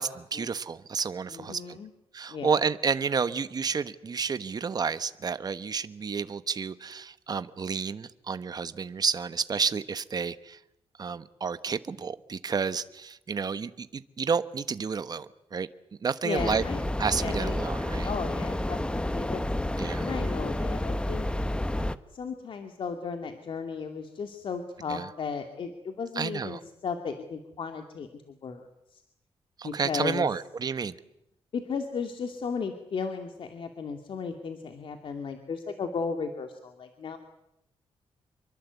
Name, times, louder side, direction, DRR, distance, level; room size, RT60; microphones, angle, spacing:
voice 1, 0.0-1.8 2.1-10.6 11.0-15.7 16.0-16.6 17.0-18.1 19.8-20.1 24.9-25.1 26.1-26.6 29.6-31.0, right 5 dB, 40° right, 13 dB, 1.2 m, -30 dB
voice 2, 1.3-1.9 2.3-2.5 16.2-16.8 17.2-17.7 18.0-19.4 20.0-21.3 22.1-28.6 28.9-29.0 29.6-30.3 31.5-37.2, left 5 dB, 60° left, 6 dB, 2.4 m, -35 dB
sound 1, 16.4-22.0, left 1 dB, 10° left, 1.0 m, -30 dB
27.0 x 23.5 x 8.3 m, 0.83 s
cardioid pair, 115°, 10 cm